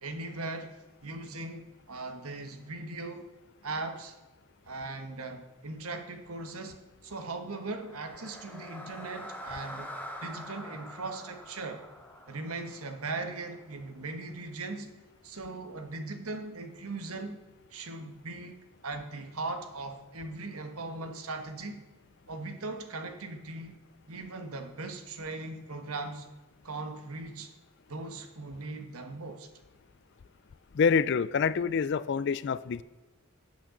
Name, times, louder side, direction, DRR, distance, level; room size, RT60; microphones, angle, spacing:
voice 1, 0.0-3.3 3.6-4.1 4.6-9.9 10.2-11.8 12.3-14.9 15.2-17.4 17.7-21.9 22.3-23.8 24.1-26.3 26.6-27.5 27.9-29.5, right 3 dB, 80° right, 7 dB, 1.4 m, -39 dB
Reverbed Breath, 7.7-13.9, equal, 5° left, 1.0 m, -45 dB
voice 2, 30.7-32.8, left 6 dB, 50° left, 17 dB, 0.4 m, -26 dB
12.0 x 8.6 x 3.9 m, 1.2 s
head